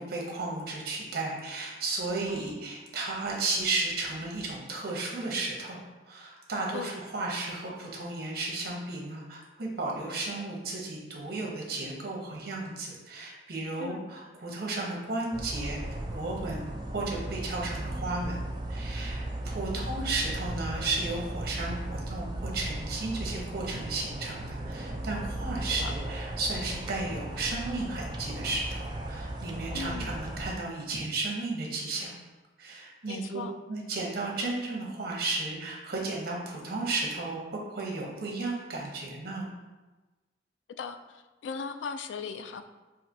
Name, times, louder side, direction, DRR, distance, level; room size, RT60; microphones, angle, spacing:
voice 1, 0.0-5.8 6.1-15.8 16.1-18.4 18.7-32.1 32.6-33.4 33.7-39.5, right 3 dB, 60° right, -2 dB, 1.0 m, -34 dB
voice 2, 13.8-14.1 19.7-20.0 25.8-25.9 29.7-30.2 33.1-33.5 40.8-42.7, left 5 dB, 85° left, 9 dB, 0.3 m, -39 dB
sound 1, 15.3-30.5, right 1 dB, 25° right, 0.4 m, -36 dB
5.7 x 2.6 x 2.7 m, 1.2 s
head